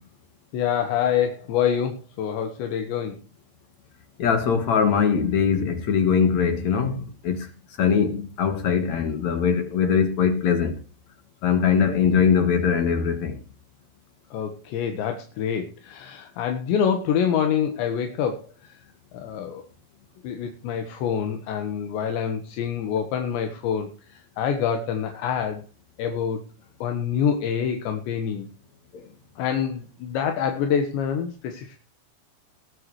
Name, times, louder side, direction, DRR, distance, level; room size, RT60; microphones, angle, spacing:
voice 1, 0.5-3.2 14.3-18.8 19.1-19.6 20.2-25.7 26.0-26.4 26.8-28.5 29.4-31.8, left 8 dB, 80° left, 3.7 m, -26 dB
voice 2, 4.2-6.9 7.3-7.4 7.8-10.7 11.4-13.3, left 7 dB, 60° left, 2.1 m, -21 dB
20.0 x 10.0 x 3.2 m
omnidirectional pair, 5.2 m